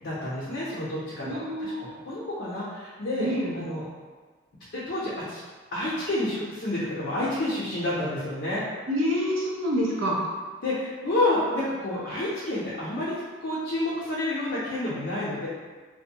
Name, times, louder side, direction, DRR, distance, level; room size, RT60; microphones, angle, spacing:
voice 1, 0.0-3.3 3.5-3.9 4.7-5.4 5.7-8.6 10.6-13.1 13.4-15.5, left 1 dB, 60° left, -9 dB, 0.6 m, -29 dB
voice 2, 1.2-1.9 3.2-3.6 8.9-10.2, equal, 85° right, -4 dB, 0.6 m, -27 dB
2.6 x 2.1 x 2.7 m, 1.4 s
head